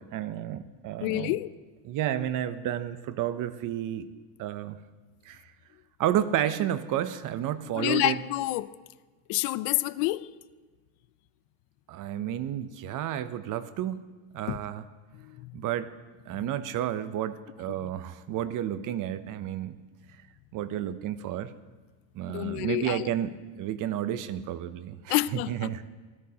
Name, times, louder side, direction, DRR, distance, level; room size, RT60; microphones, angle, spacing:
voice 1, 0.0-1.4 1.8-4.1 4.4-4.8 5.3-5.4 6.0-8.2 11.9-14.0 14.3-14.8 15.5-15.9 16.3-19.8 20.5-21.5 22.1-25.9, right 11 dB, 45° right, 0.6 m, -31 dB
voice 2, 1.0-1.5 7.7-8.7 9.3-10.3 14.5-14.6 15.2-15.5 17.8-17.9 22.3-23.1 25.1-25.7, left 17 dB, 75° left, 0.6 m, -28 dB
16.5 x 13.5 x 2.8 m
cardioid pair, 140°, 48 cm